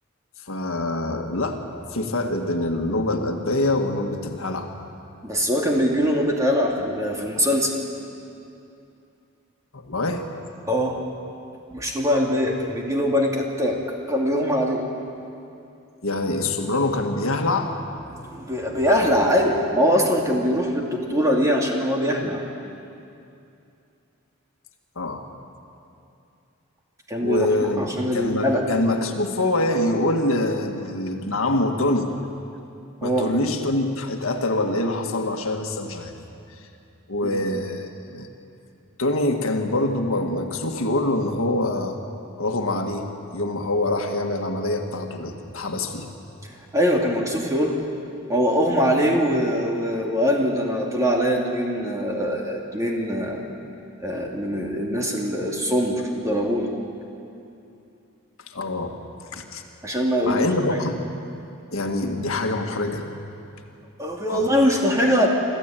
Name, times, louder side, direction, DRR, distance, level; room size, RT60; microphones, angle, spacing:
voice 1, 0.4-1.6 1.9-4.7 9.7-10.2 16.0-17.7 24.9-25.3 27.2-32.1 33.0-36.1 37.1-38.3 39.0-42.0 42.4-43.0 43.3-46.1 58.5-58.9 59.3-59.6 60.2-61.0 61.7-63.1 64.3-64.5, left 2 dB, 70° left, 3 dB, 1.7 m, -25 dB
voice 2, 5.2-7.7 10.7-11.0 11.7-13.8 14.1-14.8 18.1-22.4 27.1-28.6 33.0-33.2 37.2-37.4 46.7-47.8 48.3-53.4 54.0-56.7 59.8-60.5 64.0-65.3, equal, 15° right, -1 dB, 2.6 m, -22 dB
24.5 x 14.5 x 9.0 m, 2.6 s
head